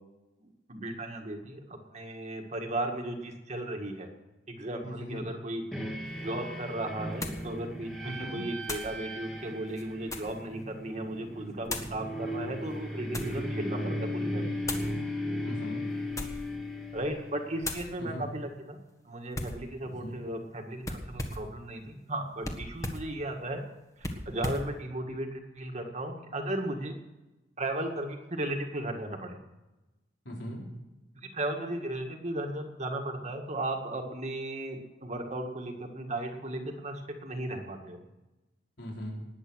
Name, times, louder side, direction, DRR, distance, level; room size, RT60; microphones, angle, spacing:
voice 1, 0.4-4.1 4.5-5.6 6.2-14.8 16.9-18.8 19.0-23.6 24.0-27.0 27.6-29.4 31.2-38.0, right 1 dB, 40° right, 3 dB, 1.8 m, -36 dB
voice 2, 4.8-5.2 8.0-8.4 15.4-15.9 18.0-18.3 20.0-20.2 30.2-30.6 38.8-39.1, equal, 75° left, -2 dB, 4.2 m, -39 dB
sound 1, 5.7-17.8, left 1 dB, ahead, 2.2 m, -36 dB
sound 2, 6.1-6.2 7.2-7.5 8.6-9.0 9.7-10.4 11.6-12.0 12.7-13.4 14.6-14.9 16.0-16.5 16.9-17.2 17.6-17.9 19.3-19.6 20.8-21.5 22.4-23.1 24.0-24.7, left 2 dB, 15° left, 1.5 m, -37 dB
19.5 x 8.6 x 6.3 m, 1.0 s
head